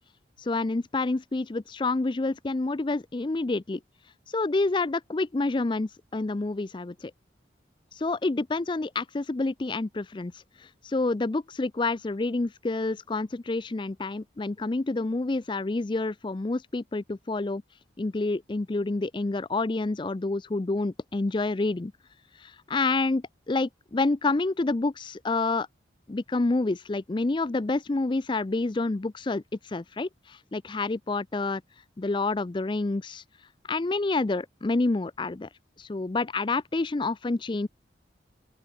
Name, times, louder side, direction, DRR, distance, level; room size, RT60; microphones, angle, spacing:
voice 1, 0.4-3.8 4.3-7.1 7.9-17.6 18.0-21.9 22.3-25.7 26.1-31.6 32.0-33.2 33.7-35.5 35.8-37.7, left 3 dB, 25° left, 0.4 m, -28 dB
open air
head